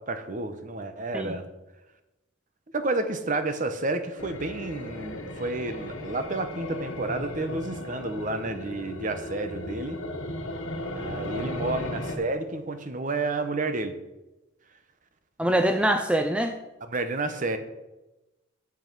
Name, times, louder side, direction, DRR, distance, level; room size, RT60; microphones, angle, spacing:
voice 1, 0.0-1.4 2.7-10.0 10.9-14.0 16.8-17.6, right 2 dB, 40° right, 9 dB, 0.8 m, -30 dB
sound 1, 4.2-12.2, left 1 dB, 75° left, 1.4 m, -36 dB
voice 2, 15.4-16.6, right 1 dB, 5° right, 6 dB, 0.4 m, -24 dB
8.9 x 7.1 x 5.3 m, 1.0 s
head